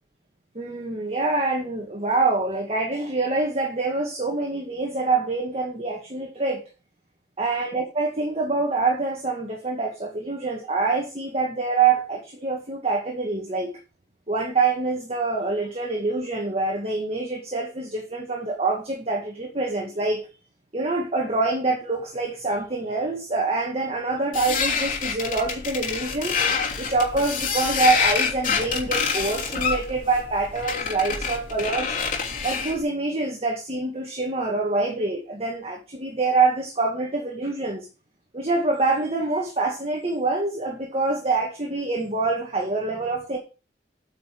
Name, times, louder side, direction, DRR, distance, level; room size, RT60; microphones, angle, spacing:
voice 1, 0.6-6.6 7.4-13.7 14.3-20.2 20.7-26.3 26.8-32.0 32.4-37.9 38.3-43.4, right 3 dB, 35° right, 1 dB, 1.9 m, -25 dB
sound 1, 24.3-32.8, left 6 dB, 50° left, 3.0 m, -27 dB
9.3 x 5.7 x 5.9 m, 0.32 s
head